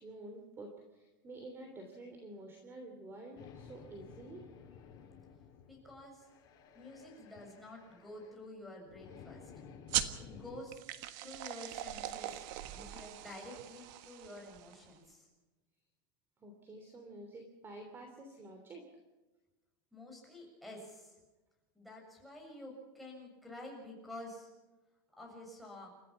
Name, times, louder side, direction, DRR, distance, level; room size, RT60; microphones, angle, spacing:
voice 1, 0.0-4.5 16.4-18.8, right 2 dB, 20° right, 3 dB, 3.2 m, -49 dB
sound 1, 3.4-10.6, left 7 dB, 35° left, 3.0 m, -55 dB
voice 2, 5.7-6.3 6.7-9.5 10.2-10.8 11.2-15.3 19.9-21.2 21.7-24.5 25.2-25.9, left 1 dB, ahead, -2 dB, 7.0 m, -50 dB
sound 2, 9.9-15.0, right 13 dB, 55° right, 1.5 m, -40 dB
30.0 x 15.0 x 5.9 m, 1.1 s
supercardioid pair, 145°, 12 cm